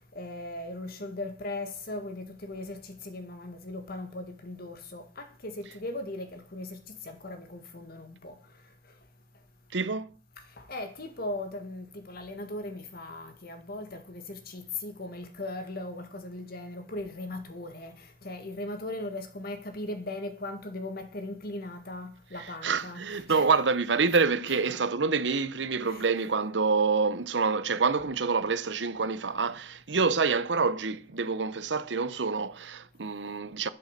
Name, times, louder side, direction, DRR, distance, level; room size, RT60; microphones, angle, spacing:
voice 1, 0.2-8.4 10.6-23.5 25.8-26.1, left 2 dB, 60° left, 1.8 m, -38 dB
voice 2, 9.7-10.1 22.6-33.7, right 4 dB, 75° right, 0.9 m, -27 dB
11.5 x 7.7 x 6.7 m
head